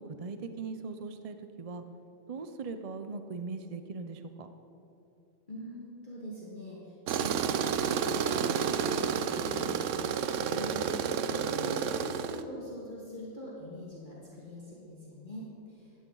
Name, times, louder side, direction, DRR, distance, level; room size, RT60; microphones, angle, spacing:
voice 1, 0.0-1.8 2.3-4.5, right 4 dB, 45° right, 8 dB, 0.4 m, -40 dB
voice 2, 5.5-16.0, equal, 40° left, -6 dB, 2.0 m, -44 dB
Tools, 7.1-12.4, right 7 dB, 70° right, 0.9 m, -30 dB
15.5 x 13.0 x 3.9 m, 2.8 s
omnidirectional pair, 1.4 m